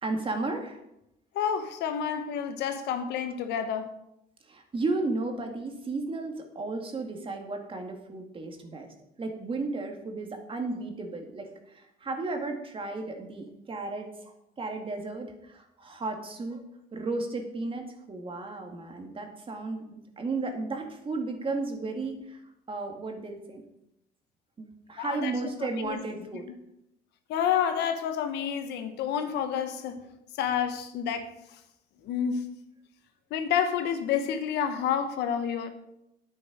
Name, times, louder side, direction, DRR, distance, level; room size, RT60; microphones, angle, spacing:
voice 1, 0.0-0.8 4.4-16.6 16.9-22.4 22.7-23.6 24.6-26.5, right 3 dB, 30° right, 4 dB, 2.1 m, -34 dB
voice 2, 1.3-3.9 25.0-25.3 25.8-26.3 27.3-30.0 30.4-31.3 32.0-32.4 33.3-35.7, left 8 dB, 80° left, 8 dB, 1.2 m, -29 dB
9.8 x 9.2 x 5.0 m, 0.83 s
cardioid pair, 110°, 17 cm